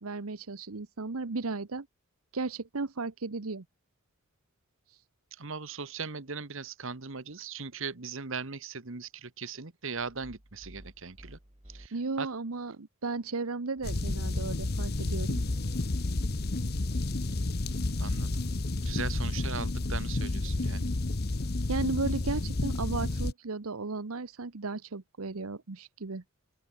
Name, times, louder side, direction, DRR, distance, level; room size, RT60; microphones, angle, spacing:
voice 1, 0.0-1.9 2.3-3.6 4.9-5.0 11.9-15.4 21.7-26.2, right 3 dB, 85° right, 1.0 m, -35 dB
voice 2, 5.3-11.4 11.7-12.3 18.0-18.4 18.8-20.9, right 5 dB, 65° right, 1.4 m, -39 dB
sound 1, 10.0-11.9 13.8-15.7 17.6-19.5 21.4-23.3, equal, 30° right, 3.0 m, -52 dB
sound 2, 13.8-23.3, left 2 dB, 45° left, 0.9 m, -31 dB
open air
head